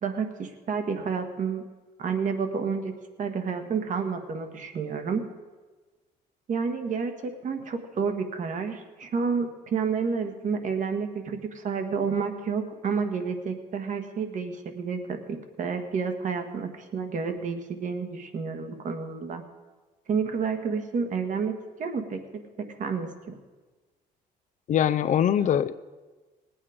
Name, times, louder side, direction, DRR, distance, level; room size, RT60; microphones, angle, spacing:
voice 1, 0.0-1.6 2.0-2.9 3.2-5.2 6.5-19.4 20.1-23.4 25.4-25.5, right 5 dB, 50° right, 7 dB, 1.5 m, -30 dB
voice 2, 24.7-25.7, left 9 dB, 45° left, 12 dB, 0.5 m, -22 dB
19.0 x 8.7 x 5.1 m, 1.3 s
cardioid pair, 110°, 17 cm